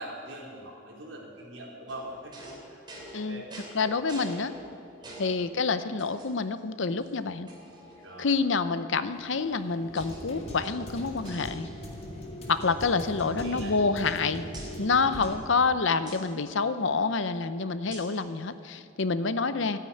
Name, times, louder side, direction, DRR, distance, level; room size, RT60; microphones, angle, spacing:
voice 1, 0.0-2.8 3.1-3.5 5.0-5.2 8.0-8.4 13.4-13.7, right 1 dB, 70° right, -3 dB, 3.9 m, -42 dB
sound 1, 1.9-5.5 6.0-6.6 7.0-7.1 7.5-8.5 9.3-10.2 10.5-12.1 12.3-12.6 12.9-14.2 14.5-14.7 16.1-16.2 17.9-18.2, right 1 dB, 20° right, 2.9 m, -47 dB
voice 2, 3.7-4.5 5.2-7.5 8.2-11.7 12.5-14.4 14.8-19.8, left 4 dB, 65° left, 12 dB, 0.7 m, -27 dB
sound 2, 9.1-15.3, equal, 30° left, 2.1 m, -40 dB
13.5 x 9.4 x 9.9 m, 2.6 s
head